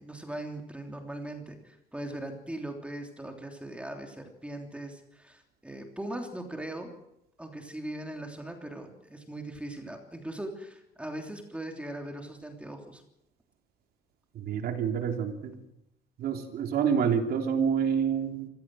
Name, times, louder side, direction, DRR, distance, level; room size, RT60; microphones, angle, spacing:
voice 1, 0.0-6.9 7.4-13.0, right 1 dB, 5° right, 3 dB, 3.2 m, -40 dB
voice 2, 14.3-15.6 16.2-18.5, right 7 dB, 65° right, 4 dB, 3.6 m, -28 dB
26.0 x 16.0 x 7.8 m, 0.86 s
cardioid pair, 110°, 17 cm